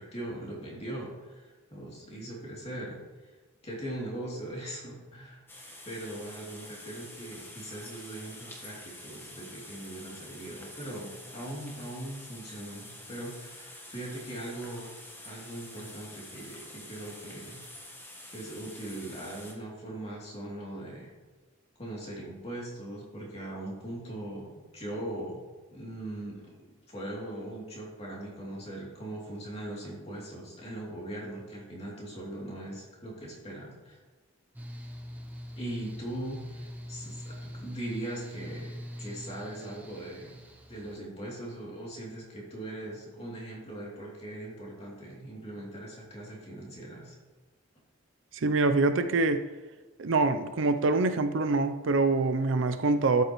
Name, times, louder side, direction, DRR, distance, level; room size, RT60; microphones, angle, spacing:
voice 1, 0.0-3.0 3.6-5.4 5.9-14.9 15.2-17.6 18.3-21.1 21.8-25.4 25.7-26.4 26.9-34.0 35.5-40.4 40.7-47.1, right 1 dB, 30° left, -4 dB, 2.8 m, -40 dB
sound 1, 5.5-19.5, left 1 dB, 10° left, 1.3 m, -47 dB
Mechanical fan, 34.5-41.0, equal, 10° right, 0.7 m, -42 dB
voice 2, 48.3-49.4 50.0-53.2, right 3 dB, 70° right, 9 dB, 0.5 m, -25 dB
12.5 x 8.2 x 3.1 m, 1.3 s
head